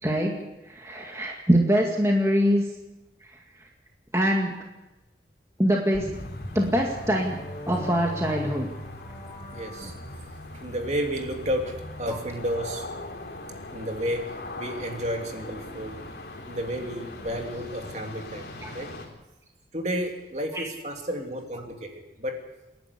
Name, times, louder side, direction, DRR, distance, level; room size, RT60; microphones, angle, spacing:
voice 1, 0.0-2.6 4.1-4.6 5.6-6.1 6.5-7.4 7.7-8.7 18.6-18.7 20.5-20.7, equal, 15° right, 0 dB, 2.0 m, -24 dB
sound 1, 5.9-10.4, left 1 dB, 25° left, 2.0 m, -41 dB
sound 2, 6.1-19.1, left 1 dB, 60° left, 3.6 m, -40 dB
voice 2, 9.5-9.9 10.5-12.8 13.7-14.3 14.6-16.0 16.5-18.5 18.7-18.9 19.7-21.9 22.2-22.4, equal, 40° right, 3 dB, 3.0 m, -31 dB
28.5 x 11.5 x 8.3 m, 1.0 s
head